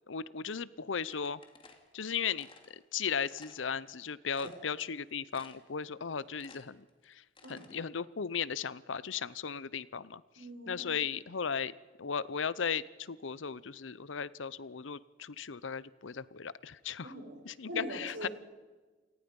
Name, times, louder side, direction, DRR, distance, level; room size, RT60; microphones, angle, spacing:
voice 1, 0.1-1.4 1.9-10.2 10.7-17.1 17.4-18.3, left 6 dB, 75° left, 19 dB, 0.7 m, -36 dB
sound 1, 1.1-2.7 3.2-3.6 4.0-4.1 4.3-5.0 5.3-5.8 6.1-7.8, left 4 dB, 30° left, 2.3 m, -56 dB
voice 2, 10.4-10.9 17.0-17.4 17.6-18.3, right 1 dB, 65° right, 3 dB, 5.5 m, -42 dB
28.0 x 18.5 x 5.4 m, 1.3 s
head